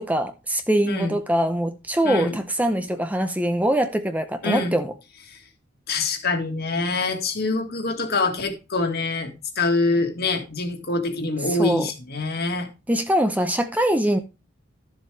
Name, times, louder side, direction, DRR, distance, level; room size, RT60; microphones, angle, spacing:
voice 1, 0.0-4.9 11.5-11.9 12.9-14.2, right 1 dB, 10° right, 0.6 m, -23 dB
voice 2, 0.9-1.2 2.0-2.4 4.4-4.7 5.3-5.4 5.9-12.7, left 3 dB, 55° left, 1.8 m, -25 dB
12.0 x 7.2 x 3.3 m
head